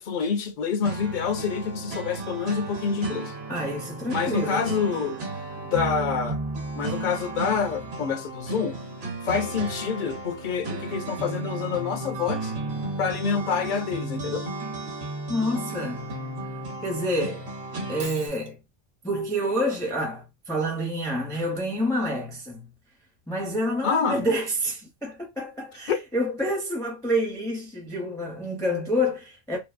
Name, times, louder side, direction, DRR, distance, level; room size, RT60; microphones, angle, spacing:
voice 1, 0.0-3.3 4.1-5.2 5.6-6.4 6.8-8.8 9.2-12.5 13.0-14.5 23.8-24.2 25.9-26.0, left 6 dB, 55° left, 0.6 m, -27 dB
sound 1, 0.8-18.3, right 2 dB, 65° right, 1.1 m, -34 dB
voice 2, 3.5-4.6 15.3-16.2 16.8-17.5 17.9-18.6 19.0-22.7 23.3-29.6, equal, 5° left, 0.5 m, -28 dB
Shatter, 18.0-18.5, right 4 dB, 50° right, 0.4 m, -41 dB
2.6 x 2.5 x 2.4 m
omnidirectional pair, 1.2 m